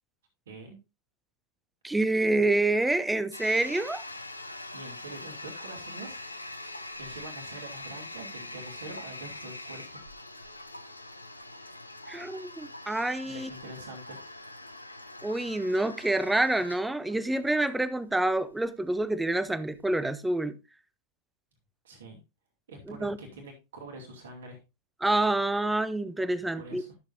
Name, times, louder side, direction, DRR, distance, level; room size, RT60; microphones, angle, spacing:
voice 1, 0.5-0.8 4.7-6.6 7.0-10.0 13.2-14.2 21.8-22.2 22.7-24.6 26.6-26.9, right 2 dB, 65° right, 2.4 m, -45 dB
voice 2, 1.8-4.0 12.1-13.5 15.2-20.6 22.9-23.2 25.0-26.8, right 2 dB, 5° right, 0.6 m, -27 dB
Toilet flush, 3.3-20.0, left 2 dB, 85° left, 0.7 m, -43 dB
12.0 x 6.9 x 2.6 m
figure-of-eight pair, 90°, 0 cm